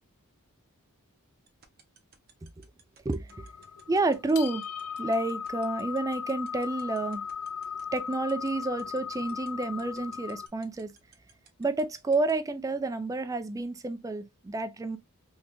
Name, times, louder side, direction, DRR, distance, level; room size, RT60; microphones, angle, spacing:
sound 1, 1.5-12.3, right 8 dB, 45° right, 0.7 m, -56 dB
voice 1, 3.0-3.5 3.9-4.6 5.0-7.3 7.9-10.9 11.6-15.0, right 2 dB, 15° right, 0.3 m, -30 dB
sound 2, 3.3-10.5, left 7 dB, 90° left, 0.4 m, -37 dB
3.3 x 2.8 x 2.5 m
head